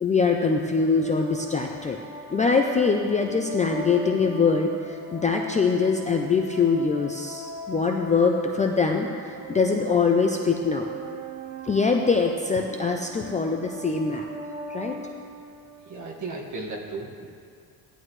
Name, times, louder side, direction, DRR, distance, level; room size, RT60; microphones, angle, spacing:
voice 1, 0.0-2.0 2.3-10.9 11.7-14.3 14.7-15.0, left 4 dB, 20° left, 2 dB, 0.4 m, -23 dB
sound 1, 0.6-16.0, right 2 dB, 25° right, 2.2 m, -39 dB
voice 2, 15.8-17.3, right 3 dB, 45° right, -1 dB, 1.7 m, -35 dB
16.0 x 11.0 x 3.1 m, 2.2 s
cardioid pair, 165°, 41 cm